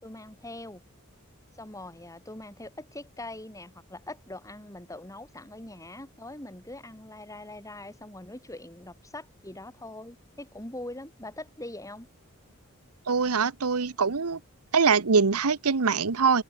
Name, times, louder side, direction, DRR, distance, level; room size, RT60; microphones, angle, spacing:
voice 1, 0.0-0.8 1.6-12.1, left 1 dB, 15° left, 4.2 m, -42 dB
voice 2, 13.1-14.4 14.7-16.4, right 5 dB, 90° right, 1.0 m, -23 dB
head